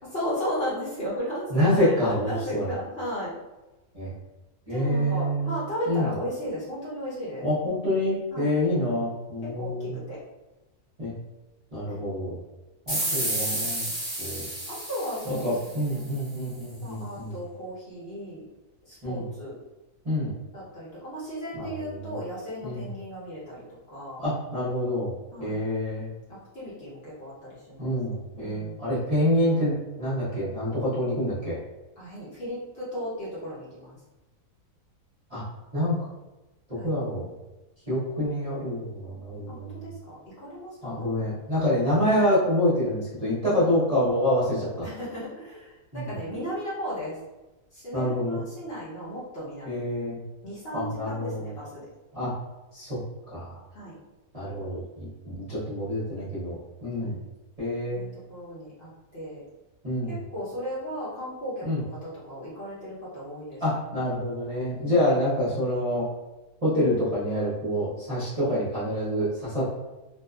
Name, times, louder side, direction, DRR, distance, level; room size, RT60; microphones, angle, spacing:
voice 1, 0.0-3.3 4.7-7.5 8.3-8.5 9.4-10.2 11.8-12.0 12.9-14.0 14.7-16.1 16.8-18.4 18.9-19.5 20.5-24.2 25.3-25.6 26.3-27.9 28.3-28.8 32.0-34.0 36.8-37.0 39.5-41.2 43.6-43.7 44.8-47.2 47.7-49.8 50.4-51.9 53.7-54.0 57.0-57.2 57.9-59.4 60.1-63.6 64.8-65.0, equal, 50° left, -9 dB, 0.9 m, -36 dB
voice 2, 1.5-2.7 3.9-4.1 4.7-5.5 5.9-6.1 7.4-10.0 11.0-11.1 11.7-12.4 12.9-13.8 14.2-14.5 15.3-17.4 19.0-19.3 20.0-20.3 21.5-22.1 22.6-22.8 24.2-25.1 25.4-26.1 27.8-31.6 35.3-35.4 35.7-36.0 36.8-37.3 37.9-39.8 40.8-44.9 45.9-46.1 47.9-48.4 49.7-50.2 50.7-51.5 52.1-52.3 52.7-53.0 53.3-53.6 54.3-57.1 57.6-58.0 59.8-60.1 61.6-61.8 63.6-66.1 66.6-69.7, left 1 dB, 35° right, -11 dB, 0.7 m, -27 dB
sound 1, 12.9-16.2, right 1 dB, 15° left, 0.7 m, -31 dB
2.7 x 2.3 x 2.3 m, 1.1 s
omnidirectional pair, 1.6 m